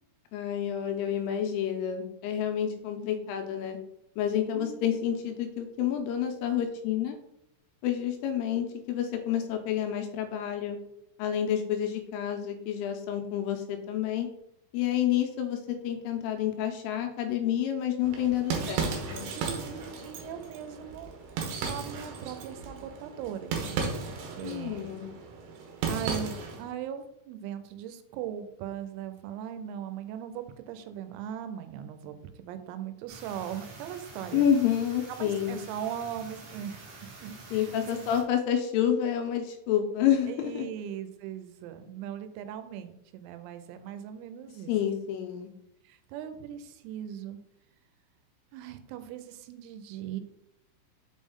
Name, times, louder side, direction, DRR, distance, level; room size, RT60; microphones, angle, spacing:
voice 1, 0.3-3.8 4.2-7.2 7.8-10.8 11.2-14.3 14.7-19.2 24.4-25.1 34.3-35.6 37.5-40.7 44.7-45.5, left 9 dB, 85° left, 5 dB, 3.0 m, -29 dB
voice 2, 4.5-5.0 19.3-21.1 21.6-23.9 24.3-25.0 25.9-34.5 35.2-38.1 40.2-44.7 45.8-47.4 48.5-50.2, right 9 dB, 90° right, 10 dB, 3.4 m, -39 dB
sound 1, 18.0-26.7, right 5 dB, 70° right, 2.9 m, -35 dB
sound 2, 33.1-38.2, right 3 dB, 55° right, 2.3 m, -47 dB
6.9 x 5.2 x 3.6 m, 0.80 s
omnidirectional pair, 6.0 m